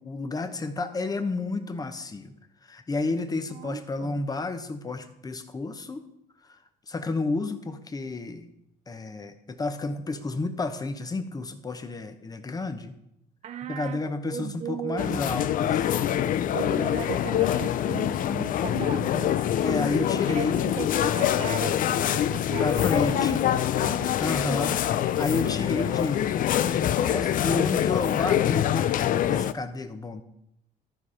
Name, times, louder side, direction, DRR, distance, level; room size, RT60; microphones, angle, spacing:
voice 1, 0.0-2.3 2.6-6.0 6.4-6.6 6.9-8.5 8.9-12.9 13.7-15.9 19.6-20.8 22.6-23.4 24.2-28.9 29.3-30.2, left 3 dB, 20° left, 8 dB, 1.0 m, -31 dB
voice 2, 3.5-4.2 13.4-15.2 16.5-19.4 20.0-24.1 24.4-24.6, right 9 dB, 40° right, 9 dB, 0.4 m, -37 dB
sound 1, 15.0-29.5, left 11 dB, 55° left, 0.5 m, -25 dB
13.0 x 4.9 x 5.7 m, 0.79 s
cardioid pair, 110°, 17 cm